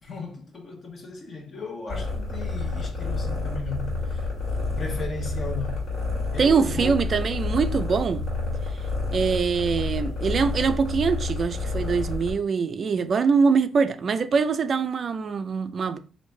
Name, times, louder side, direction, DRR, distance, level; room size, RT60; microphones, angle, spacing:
voice 1, 0.0-4.3 4.7-5.8 6.3-7.0, left 3 dB, 45° left, 0.9 m, -36 dB
sound 1, 1.9-12.3, left 2 dB, 65° left, 1.8 m, -29 dB
voice 2, 6.4-8.2 9.1-16.0, right 5 dB, 45° right, 0.3 m, -23 dB
3.1 x 2.6 x 3.2 m
cardioid pair, 90°, 0 cm